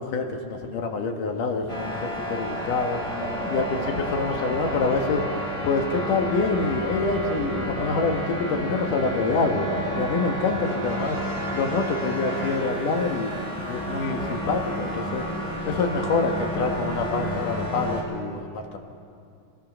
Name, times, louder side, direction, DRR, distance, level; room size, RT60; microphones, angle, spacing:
voice 1, 0.0-3.0 3.5-5.2 5.6-9.7 10.0-11.2 11.5-13.3 13.7-15.3 15.6-18.8, left 4 dB, 70° left, 4 dB, 3.0 m, -26 dB
sound 1, 1.7-18.0, equal, 10° left, 3.8 m, -31 dB
sound 2, 2.6-10.0, right 1 dB, 80° right, 6.9 m, -36 dB
Brass instrument, 10.6-13.3, right 1 dB, 30° right, 5.0 m, -39 dB
27.0 x 20.0 x 6.3 m, 2.4 s
omnidirectional pair, 4.0 m